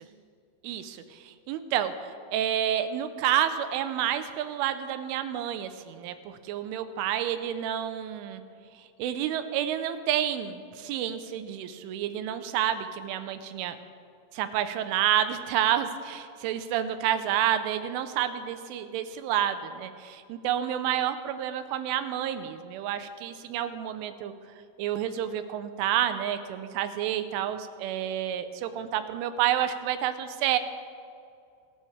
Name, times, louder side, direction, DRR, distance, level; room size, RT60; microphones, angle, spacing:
voice 1, 0.6-8.4 9.0-13.8 14.3-24.3 24.8-30.6, right 10 dB, 85° right, 10 dB, 3.2 m, -29 dB
27.0 x 13.0 x 3.4 m, 2.5 s
omnidirectional pair, 5.7 m